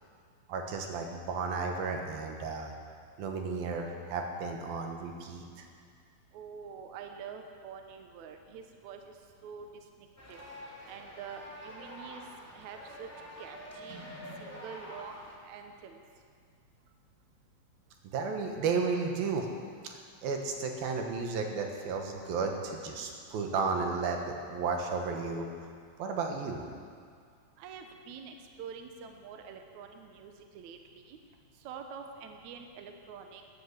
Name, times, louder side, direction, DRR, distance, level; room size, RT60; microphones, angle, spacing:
voice 1, 0.5-2.7 3.2-5.7 18.1-19.5 19.9-24.2 24.5-25.5 26.0-26.6, right 4 dB, 85° right, 3 dB, 3.2 m, -33 dB
voice 2, 6.3-9.0 9.4-12.2 12.5-13.1 13.4-14.0 14.4-16.0 27.6-31.2 31.6-33.4, right 6 dB, 65° right, 5 dB, 2.1 m, -46 dB
sound 1, 10.2-15.4, equal, 5° left, 1.8 m, -47 dB
17.0 x 10.5 x 6.9 m, 2.1 s
omnidirectional pair, 4.1 m